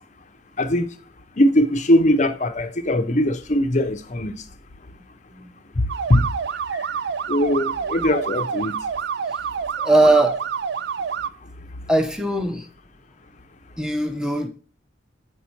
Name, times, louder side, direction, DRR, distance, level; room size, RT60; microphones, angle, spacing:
voice 1, 1.4-4.3 6.1-6.3 7.3-8.8, left 1 dB, 40° left, 0.7 m, -20 dB
sound 1, 5.9-11.3, right 6 dB, 60° right, 0.4 m, -28 dB
voice 2, 9.8-10.4 11.9-12.7 13.8-14.5, right 2 dB, 5° right, 0.8 m, -20 dB
8.3 x 5.2 x 4.4 m
head